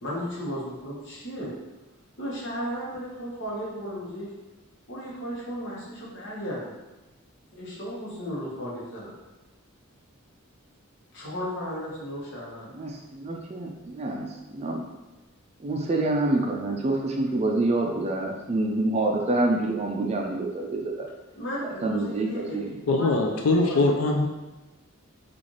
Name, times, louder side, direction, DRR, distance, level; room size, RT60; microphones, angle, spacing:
voice 1, 0.0-1.5 2.2-4.3 4.9-6.8 7.5-9.1 11.1-12.7 21.4-23.3 23.7-23.9, equal, 55° left, -5 dB, 1.0 m, -35 dB
voice 2, 12.7-14.8 15.6-21.1 21.6-22.7, right 2 dB, 30° right, 1 dB, 0.4 m, -27 dB
voice 3, 22.9-24.3, left 2 dB, 80° left, 2 dB, 0.4 m, -22 dB
3.2 x 2.5 x 3.8 m, 1.1 s
head